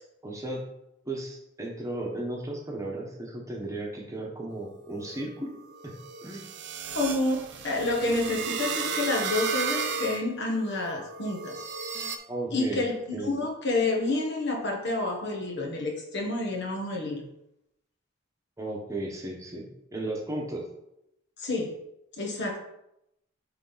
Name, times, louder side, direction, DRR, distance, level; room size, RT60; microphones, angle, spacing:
voice 1, 0.2-0.6 1.0-5.9 6.2-6.5 12.3-12.8 13.1-13.3 18.6-20.7, right 1 dB, 15° right, -1 dB, 1.1 m, -35 dB
sound 1, 4.6-12.2, right 5 dB, 60° right, 0.7 m, -34 dB
voice 2, 6.9-11.6 12.5-12.9 13.2-17.3 21.4-21.7 22.2-22.6, left 2 dB, 55° left, 1 dB, 1.4 m, -29 dB
9.6 x 3.6 x 4.0 m, 0.83 s
head